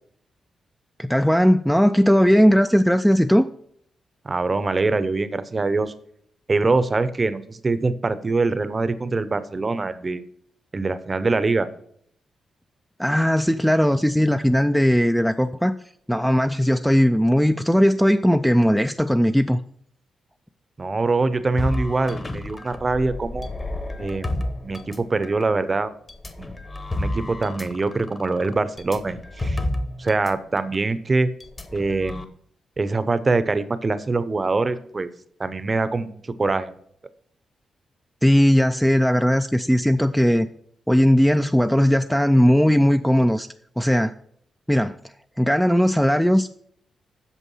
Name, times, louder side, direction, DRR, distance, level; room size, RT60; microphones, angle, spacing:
voice 1, 1.0-3.5 13.0-15.7 16.1-19.6 38.2-40.5 40.9-43.5 43.8-44.1 44.7-45.0 45.4-46.5, equal, ahead, 0.3 m, -18 dB
voice 2, 4.2-5.9 6.5-10.2 10.7-11.7 20.8-23.5 24.0-25.9 26.4-26.5 27.0-29.6 30.0-31.3 31.7-32.3 32.8-35.1 35.4-36.7, right 3 dB, 25° right, 0.7 m, -24 dB
sound 1, 21.6-25.4 26.1-30.3 30.6-30.8 31.4-32.2, left 1 dB, 20° left, 1.0 m, -31 dB
8.3 x 6.4 x 5.5 m
cardioid pair, 125°, 0 cm